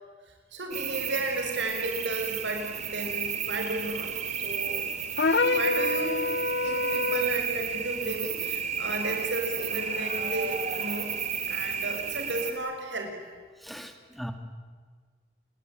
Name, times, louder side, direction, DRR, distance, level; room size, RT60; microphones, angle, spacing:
voice 1, 0.5-4.1 4.4-4.9 5.4-6.3 6.6-11.1 11.5-13.1, right 1 dB, 85° right, 3 dB, 6.1 m, -33 dB
sound 1, 0.7-12.5, right 7 dB, 40° right, 2.6 m, -32 dB
sound 2, 5.2-7.4, left 3 dB, 70° left, 0.8 m, -27 dB
voice 2, 13.6-14.3, equal, ahead, 6 dB, 2.4 m, -39 dB
28.5 x 21.5 x 9.3 m, 1.6 s
head